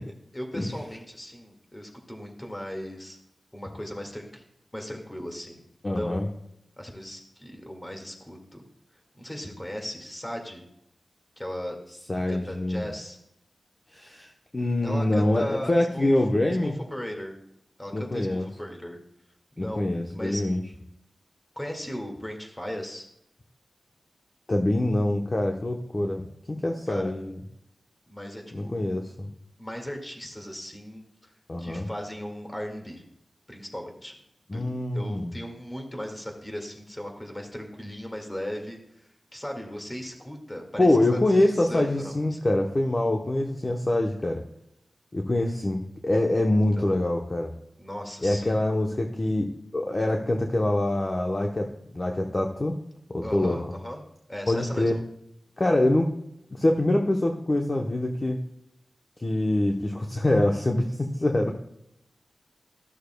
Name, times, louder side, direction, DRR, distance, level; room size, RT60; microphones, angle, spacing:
voice 1, 0.3-3.2 3.5-4.4 4.7-5.6 6.0-6.3 6.8-8.6 9.1-10.6 11.4-11.8 12.3-13.2 14.8-16.1 16.6-17.3 17.8-19.0 19.6-19.9 20.1-20.4 21.6-23.1 26.9-27.1 28.1-28.8 29.6-31.3 31.6-33.0 33.5-34.2 34.5-34.6 34.9-38.8 39.3-42.4 46.8-46.9 47.8-48.6 53.2-54.0 54.3-55.0, equal, 15° left, 2 dB, 1.9 m, -37 dB
voice 2, 5.8-6.3 12.1-12.9 13.9-16.7 17.9-18.5 19.6-20.6 24.5-26.2 26.5-27.4 28.5-29.3 31.5-31.9 34.5-35.3 40.8-44.4 45.1-47.5 48.2-52.8 53.1-53.6 54.5-55.0 55.6-56.1 56.5-58.4 59.2-61.5, left 1 dB, 35° left, 1 dB, 0.9 m, -25 dB
13.5 x 6.5 x 2.2 m, 0.78 s
cardioid pair, 60°, 0 cm